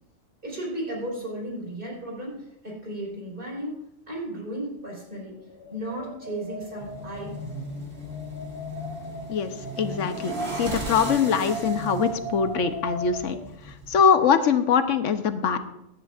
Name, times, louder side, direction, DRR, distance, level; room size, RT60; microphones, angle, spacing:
voice 1, 0.4-3.8 4.1-5.4 5.7-7.3, right 1 dB, 45° right, -3 dB, 4.7 m, -34 dB
Wind, 5.4-13.4, right 2 dB, 50° left, 2.4 m, -37 dB
sound 1, 6.8-14.0, equal, 85° right, 2.7 m, -37 dB
voice 2, 9.8-13.4 13.9-15.6, left 6 dB, 90° left, 9 dB, 1.2 m, -22 dB
17.0 x 10.5 x 2.5 m, 0.85 s
omnidirectional pair, 1.2 m